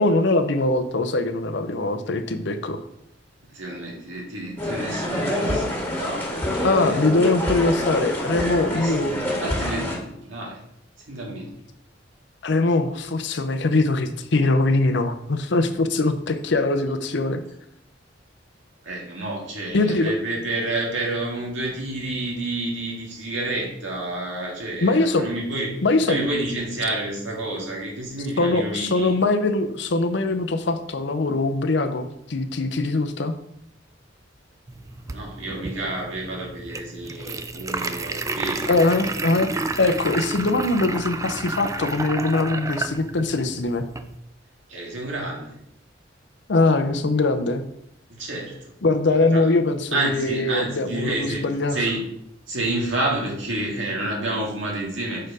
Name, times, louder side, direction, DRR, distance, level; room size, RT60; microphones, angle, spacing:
voice 1, 0.0-2.8 6.6-9.1 12.4-17.4 19.7-20.1 24.8-25.3 25.8-26.2 28.4-33.3 38.7-43.8 46.5-47.6 48.8-51.8, left 2 dB, 65° left, 9 dB, 0.7 m, -22 dB
voice 2, 3.5-7.0 8.7-9.0 9.4-10.6 11.1-11.5 18.8-25.8 26.1-29.1 35.1-39.0 44.7-45.5 48.1-48.7 49.3-49.5 49.9-51.4 51.7-52.0 52.5-55.3, right 2 dB, 90° right, -2 dB, 2.1 m, -29 dB
sound 1, 4.6-9.9, left 1 dB, 15° left, 1.9 m, -26 dB
sound 2, 34.7-44.2, right 3 dB, 15° right, 0.4 m, -31 dB
6.4 x 4.5 x 4.8 m, 0.77 s
head